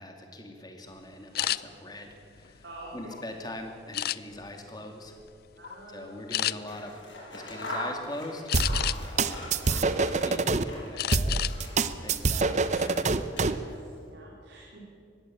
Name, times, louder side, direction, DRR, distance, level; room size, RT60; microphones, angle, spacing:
voice 1, 0.0-2.6 2.9-5.2 5.9-7.0 7.3-8.5 8.9-13.0, left 1 dB, 20° left, 3 dB, 2.5 m, -42 dB
sound 1, 1.3-1.6 2.2-3.2 3.9-4.5 5.1-5.3 5.6-5.8 6.3-6.5 8.5-9.2 9.7-10.4 11.0-11.6 11.9-12.1 12.5-12.9, left 13 dB, 55° left, 0.5 m, -31 dB
voice 2, 2.6-3.1 5.6-6.2 13.4-13.7 14.0-14.8, right 1 dB, 75° right, -3 dB, 3.9 m, -46 dB
Scissors, 6.5-11.0 11.3-13.9, left 1 dB, 85° left, 7.0 m, -42 dB
sound 2, 8.5-10.6 11.1-13.6, right 3 dB, 40° right, 0.7 m, -26 dB
20.5 x 16.0 x 8.8 m, 2.4 s
head